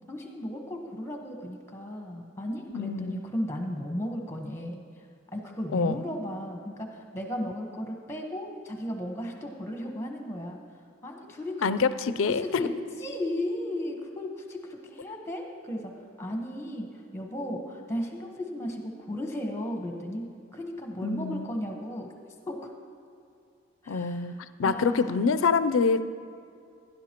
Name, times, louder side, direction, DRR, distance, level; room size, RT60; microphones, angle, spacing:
voice 1, 0.1-4.8 5.3-10.6 11.0-11.7 12.2-12.7 13.0-15.9 16.2-22.1 22.5-22.6 23.8-24.3 24.6-25.2, left 1 dB, 15° left, 2 dB, 1.1 m, -35 dB
voice 2, 2.7-3.2 5.7-6.0 11.6-12.4 21.0-21.5 23.9-24.3 24.6-26.0, left 5 dB, 80° left, 13 dB, 0.4 m, -26 dB
16.0 x 11.0 x 3.0 m, 2.5 s
head